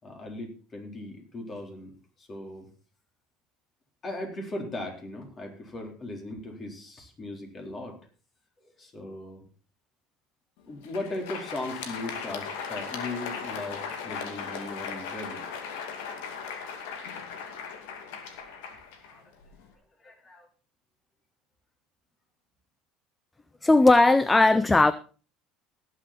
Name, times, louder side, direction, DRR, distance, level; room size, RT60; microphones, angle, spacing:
voice 1, 0.0-2.7 4.0-8.0 8.6-9.5 10.7-15.5 19.0-19.2 20.0-20.5, left 2 dB, 30° left, 2 dB, 4.0 m, -38 dB
Crowd, 10.7-19.7, left 6 dB, 90° left, 2.4 m, -38 dB
voice 2, 23.6-24.9, left 2 dB, 10° left, 15 dB, 0.5 m, -18 dB
18.0 x 7.8 x 4.3 m, 0.37 s
supercardioid pair, 120°, 0 cm